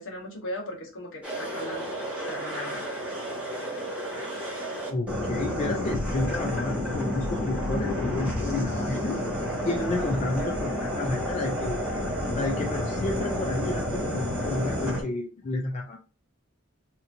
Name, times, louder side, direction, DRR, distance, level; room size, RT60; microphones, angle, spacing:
voice 1, 0.0-1.9 2.3-2.9 10.0-10.1, left 1 dB, 65° left, 1.2 m, -38 dB
sound 1, 1.2-15.0, equal, 5° right, 1.0 m, -30 dB
voice 2, 4.9-9.2 9.6-11.8 12.3-16.0, left 2 dB, 35° left, 0.4 m, -31 dB
2.9 x 2.5 x 2.5 m
head